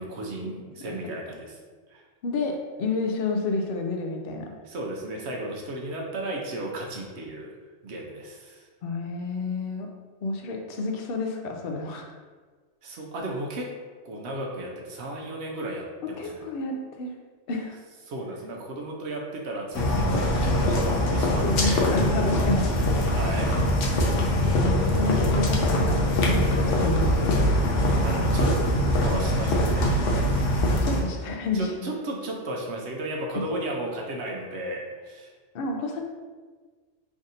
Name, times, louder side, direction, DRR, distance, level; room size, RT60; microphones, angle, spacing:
voice 1, 0.0-1.6 1.9-2.0 4.6-7.5 7.8-8.7 12.8-13.7 14.0-16.4 18.1-21.8 23.1-23.5 24.3-24.5 28.0-28.5 29.0-30.0 31.5-35.3, right 1 dB, 70° right, -1 dB, 0.9 m, -34 dB
voice 2, 2.2-4.5 8.8-9.9 10.2-12.1 16.2-17.1 17.5-17.8 21.4-22.8 23.1-23.2 24.4-27.6 30.8-31.9 33.3-33.4 35.5-36.0, left 3 dB, 60° left, 3 dB, 0.7 m, -30 dB
sound 1, 19.7-31.0, left 1 dB, 80° left, 1.0 m, -23 dB
3.5 x 2.5 x 4.0 m, 1.4 s
omnidirectional pair, 1.3 m